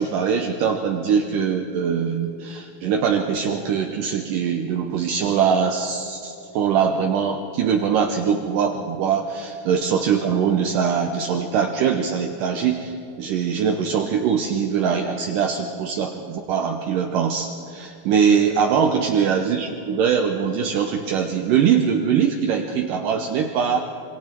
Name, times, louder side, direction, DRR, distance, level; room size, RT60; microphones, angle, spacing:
voice 1, 0.0-23.8, right 7 dB, 75° right, 3 dB, 2.3 m, -22 dB
26.5 x 24.0 x 4.6 m, 2.6 s
omnidirectional pair, 4.3 m